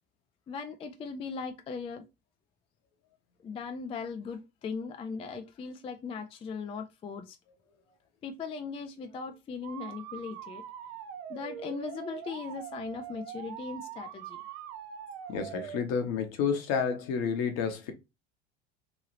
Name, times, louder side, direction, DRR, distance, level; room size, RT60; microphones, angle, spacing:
voice 1, 0.5-2.0 3.4-7.4 8.2-10.6 11.3-14.4, left 5 dB, 20° left, 0.3 m, -39 dB
sound 1, 9.6-15.8, right 9 dB, 55° right, 0.6 m, -43 dB
voice 2, 15.3-17.9, left 6 dB, 55° left, 0.9 m, -30 dB
3.1 x 2.7 x 2.6 m
hypercardioid pair, 75°, 31 cm